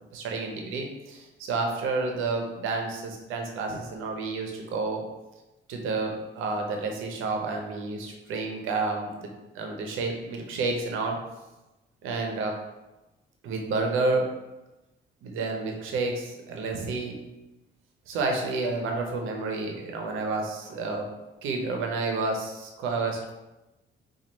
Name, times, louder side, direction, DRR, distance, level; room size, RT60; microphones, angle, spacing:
voice 1, 0.1-5.0 5.7-11.2 12.0-12.6 13.4-14.3 15.2-17.2 18.1-21.1 21.4-23.3, right 3 dB, 85° right, 2 dB, 0.7 m, -30 dB
4.4 x 2.4 x 3.0 m, 1.0 s
cardioid pair, 90°, 20 cm